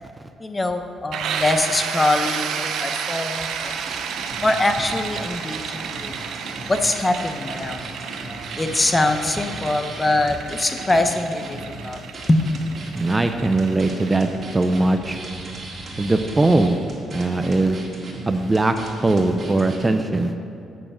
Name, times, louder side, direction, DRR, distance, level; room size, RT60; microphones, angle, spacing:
voice 1, 0.4-3.8 4.4-6.1 6.7-8.1 8.6-11.6 11.8-12.0 12.3-12.4, left 2 dB, 20° left, 7 dB, 0.7 m, -23 dB
sound 1, 1.1-16.7, right 7 dB, 80° right, 0.6 m, -32 dB
sound 2, 3.6-19.9, right 1 dB, 40° right, 2.0 m, -37 dB
voice 2, 12.9-15.2 16.0-16.8 17.1-17.8 18.3-18.7 19.0-20.3, right 2 dB, 20° right, 7 dB, 0.5 m, -20 dB
7.8 x 6.9 x 6.1 m, 2.7 s
cardioid pair, 90°, 0 cm